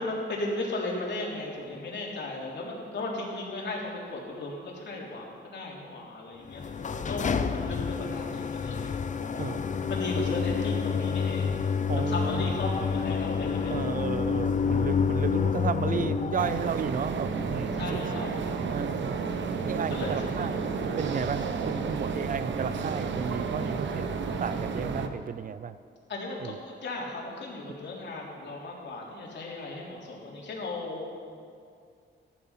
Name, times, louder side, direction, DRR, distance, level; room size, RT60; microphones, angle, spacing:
voice 1, 0.0-6.6 7.1-9.6 9.9-11.6 11.9-13.8 17.7-18.3 19.9-20.5 26.1-31.1, left 2 dB, 65° left, -3 dB, 3.4 m, -36 dB
sound 1, 6.5-16.8, left 6 dB, 40° left, 0.8 m, -28 dB
voice 2, 11.9-12.6 13.7-18.0 18.7-19.2 19.7-20.6 21.0-24.1 24.4-25.8 26.4-26.6, right 6 dB, 45° right, 14 dB, 0.6 m, -33 dB
sound 2, 16.4-25.1, right 5 dB, 70° right, 1.0 m, -31 dB
14.5 x 11.5 x 5.8 m, 2.3 s
cardioid pair, 105°, 20 cm